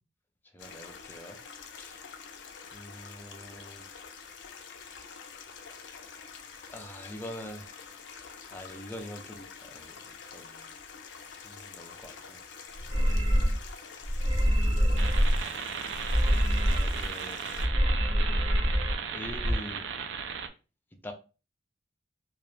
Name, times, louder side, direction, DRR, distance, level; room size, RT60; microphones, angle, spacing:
voice 1, 0.5-1.4 1.8-2.0 2.7-3.8 6.7-7.8 8.1-10.0 10.3-10.7 11.4-12.4 14.4-14.7 16.7-17.4 19.1-19.9 21.0-21.1, left 1 dB, 10° left, 0.4 m, -44 dB
Stream, 0.6-17.7, left 6 dB, 75° left, 0.4 m, -47 dB
sound 1, 12.8-13.7 14.0-15.4 15.9-17.1 17.5-18.9 19.2-19.6, equal, 30° right, 0.7 m, -25 dB
sound 2, 15.0-20.5, right 7 dB, 80° right, 0.3 m, -36 dB
2.3 x 2.0 x 2.9 m
head